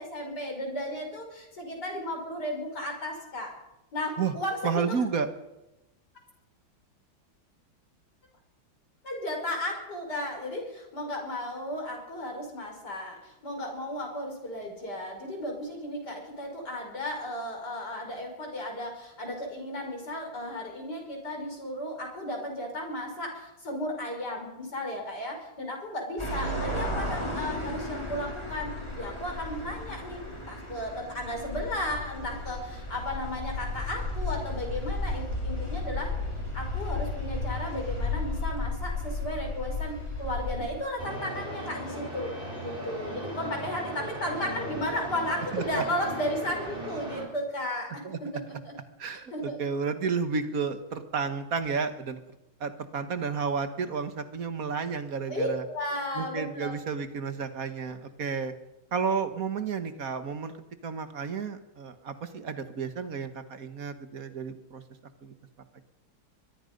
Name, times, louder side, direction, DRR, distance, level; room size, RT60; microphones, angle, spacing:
voice 1, 0.0-3.5 3.9-4.9 9.0-36.1 36.5-42.3 42.6-48.7 49.3-49.6 55.3-56.7, left 1 dB, 55° left, 2 dB, 6.1 m, -34 dB
voice 2, 4.6-5.3 45.5-45.8 48.0-48.6 49.0-52.2 52.6-55.6 56.1-58.5 58.9-60.5 60.8-64.8 65.2-65.3 65.7-65.8, right 5 dB, 45° right, 9 dB, 1.8 m, -31 dB
sound 1, 26.2-40.8, left 2 dB, 15° left, 4.7 m, -34 dB
sound 2, 41.0-47.2, right 1 dB, 25° right, 4.7 m, -37 dB
23.0 x 22.5 x 5.4 m, 0.96 s
omnidirectional pair, 2.2 m